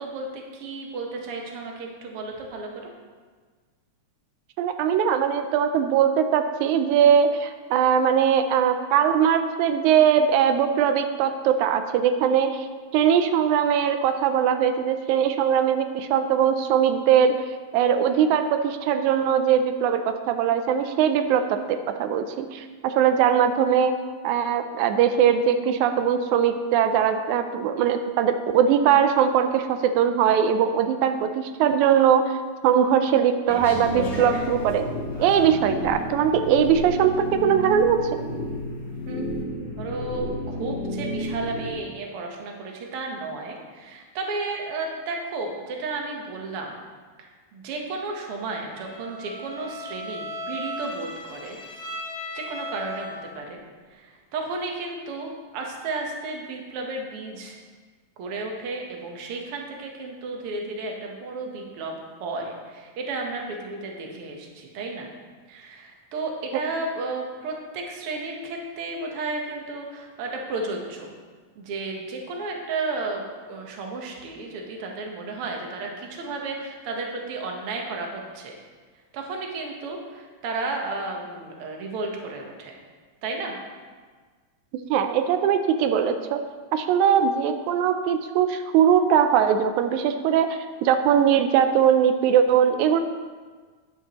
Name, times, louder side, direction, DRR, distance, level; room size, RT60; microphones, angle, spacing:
voice 1, 0.0-2.9 39.1-46.8 47.2-51.6 52.3-53.6 53.9-57.6 58.2-65.1 65.5-71.1 71.6-78.6 79.1-82.8 83.2-83.6, right 3 dB, 60° right, 1 dB, 1.9 m, -33 dB
voice 2, 4.6-12.7 12.9-17.4 17.7-24.0 24.2-32.4 32.6-34.8 35.2-38.0 66.5-66.6 84.9-86.4 86.7-93.0, right 8 dB, 90° right, 8 dB, 2.0 m, -21 dB
sound 1, 33.5-35.7 36.5-36.6, left 1 dB, 35° left, 1.3 m, -35 dB
sound 2, 33.7-41.7, left 1 dB, 75° left, 3.1 m, -32 dB
Bowed string instrument, 48.7-53.4, left 1 dB, 90° left, 0.8 m, -36 dB
10.0 x 9.9 x 3.0 m, 1.5 s
omnidirectional pair, 3.3 m